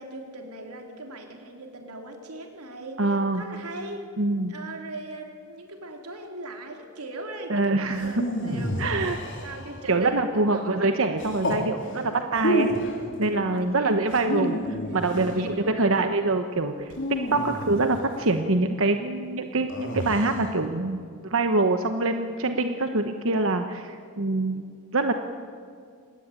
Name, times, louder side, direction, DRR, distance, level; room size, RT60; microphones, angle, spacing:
voice 1, 0.0-4.1 4.5-9.1 9.4-11.1 11.8-12.3 13.3-13.9 14.3-14.5 15.1-16.1 17.3-17.6, right 2 dB, 90° right, 3 dB, 3.9 m, -40 dB
voice 2, 3.0-3.4 4.2-4.5 7.5-8.2 8.8-9.2 9.9-12.7 13.2-24.6 24.9-25.1, right 2 dB, 60° right, 7 dB, 1.1 m, -25 dB
sound 1, 7.9-9.9 11.2-11.7 12.3-13.0 14.1-15.4 16.9-18.1 19.7-20.5, equal, 55° left, 4.0 m, -30 dB
26.5 x 19.0 x 9.1 m, 2.2 s
head